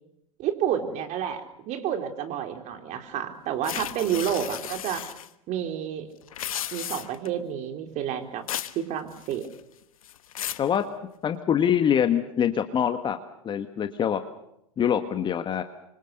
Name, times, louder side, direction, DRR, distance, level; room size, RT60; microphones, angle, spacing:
voice 1, 0.4-5.0 5.5-6.1 6.7-8.4 8.8-9.5, right 9 dB, 40° right, 6 dB, 3.8 m, -30 dB
sound 1, 3.6-5.3 6.2-7.3 8.5-8.8 9.1-9.6 10.0-10.7, left 11 dB, 75° left, 1.3 m, -34 dB
voice 2, 11.2-13.2 13.4-14.2 14.8-15.6, left 9 dB, 25° left, 8 dB, 1.6 m, -24 dB
26.0 x 24.5 x 6.7 m, 0.78 s
hypercardioid pair, 105°, 18 cm